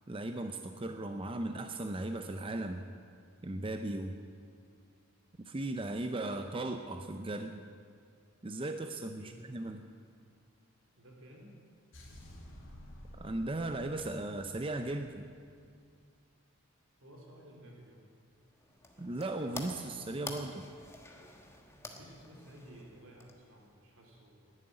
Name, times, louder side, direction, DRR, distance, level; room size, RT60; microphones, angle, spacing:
voice 1, 0.1-2.9 3.4-4.2 5.5-7.6 8.4-9.8 13.2-15.3 19.0-20.6, right 2 dB, 25° right, 7 dB, 0.5 m, -37 dB
voice 2, 11.0-11.5 17.0-18.0 21.7-24.5, right 1 dB, 75° right, 0 dB, 3.4 m, -55 dB
sound 1, 11.9-16.0, equal, 65° left, 3.1 m, -52 dB
sound 2, 18.4-23.7, left 2 dB, 15° left, 1.3 m, -48 dB
11.5 x 10.5 x 9.8 m, 2.2 s
head